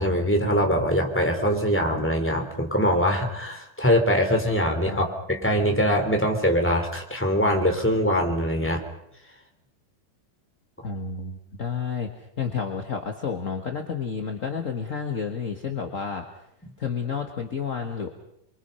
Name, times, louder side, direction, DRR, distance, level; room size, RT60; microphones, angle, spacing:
voice 1, 0.0-8.8, equal, 5° left, 2 dB, 3.0 m, -23 dB
voice 2, 10.8-12.1 12.4-16.3 16.8-18.1, left 6 dB, 35° left, 4 dB, 1.3 m, -30 dB
29.5 x 24.0 x 5.6 m, 0.76 s
omnidirectional pair, 3.6 m